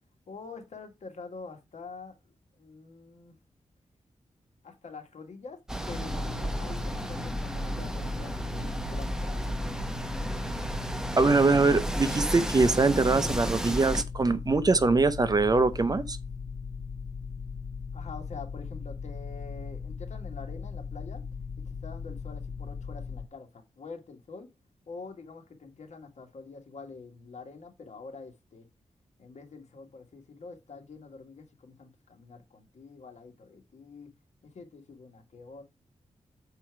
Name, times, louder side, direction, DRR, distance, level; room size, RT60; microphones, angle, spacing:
voice 1, 0.3-2.2 2.6-3.4 4.6-5.6 5.9-9.5 17.9-21.2 21.8-24.5 24.9-28.7 29.2-34.1 34.4-35.6, left 4 dB, 65° left, 1.8 m, -46 dB
sound 1, 5.7-14.0, right 1 dB, 5° right, 0.9 m, -33 dB
sound 2, 5.9-23.3, left 5 dB, 40° left, 0.5 m, -38 dB
voice 2, 11.2-16.2, right 3 dB, 30° right, 0.7 m, -23 dB
7.0 x 4.4 x 4.6 m
wide cardioid pair, 100°, 12 cm